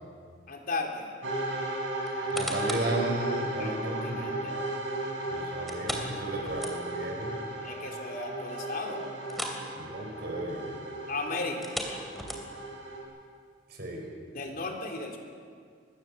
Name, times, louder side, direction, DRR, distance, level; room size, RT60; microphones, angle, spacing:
voice 1, 0.5-1.1 3.6-4.6 4.9-5.2 6.3-6.7 7.6-9.0 11.1-11.7 14.3-15.2, left 3 dB, 50° left, 2 dB, 3.3 m, -36 dB
sound 1, 1.2-13.0, right 2 dB, 85° right, 7.2 m, -35 dB
sound 2, 2.0-3.0 3.5-3.6 5.7-7.1 7.5-7.6 8.0-8.1 9.2-9.7 9.9-10.2 11.5-12.7 13.4-13.5, equal, ahead, 3.0 m, -37 dB
voice 2, 2.3-4.2 5.3-7.3 9.7-10.7 13.7-14.0, right 1 dB, 60° right, 1 dB, 5.7 m, -34 dB
24.0 x 21.5 x 7.3 m, 2.1 s
head